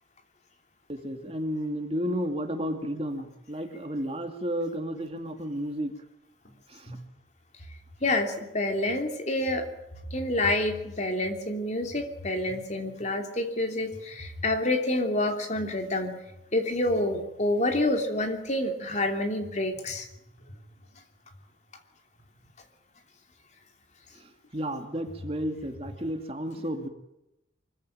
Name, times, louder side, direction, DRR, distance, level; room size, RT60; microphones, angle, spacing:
voice 1, 0.9-5.9 6.7-7.0 24.1-26.9, equal, 30° right, 5 dB, 2.6 m, -32 dB
sound 1, 6.4-6.6 6.9-8.4 8.9-9.0 9.4-11.5 11.8-13.3 13.9-15.0 15.5-15.9 16.2-18.3 18.9-21.5 22.3-22.4 22.9-23.0 24.4-26.1, left 1 dB, 70° left, 4.6 m, -46 dB
voice 2, 8.0-9.7 10.1-16.2 16.5-20.1, left 1 dB, 40° left, 5 dB, 3.0 m, -28 dB
24.0 x 15.0 x 9.0 m, 0.88 s
head